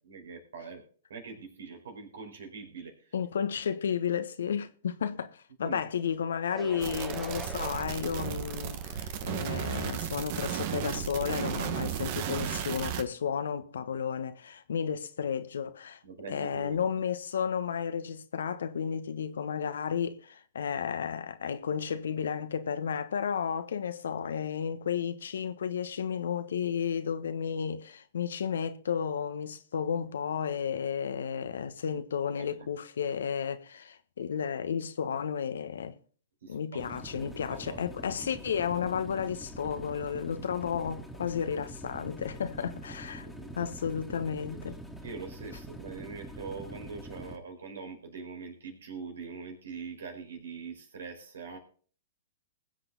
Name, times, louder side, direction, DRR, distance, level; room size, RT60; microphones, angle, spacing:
voice 1, 0.1-0.8 1.1-3.1 5.6-5.8 16.0-17.1 31.9-32.0 32.4-32.7 36.4-37.9 43.1-44.0 44.4-44.6 45.0-51.6, right 5 dB, 75° right, 4.8 m, -43 dB
voice 2, 3.1-16.0 16.3-36.0 36.5-43.3 43.5-44.8, left 7 dB, 75° left, 1.3 m, -33 dB
sound 1, 6.5-10.4, right 5 dB, 20° right, 2.2 m, -45 dB
sound 2, 6.8-13.0, right 9 dB, 50° right, 1.8 m, -34 dB
sound 3, 36.8-47.4, equal, ahead, 2.5 m, -45 dB
20.5 x 8.0 x 4.0 m
hypercardioid pair, 115°, 0 cm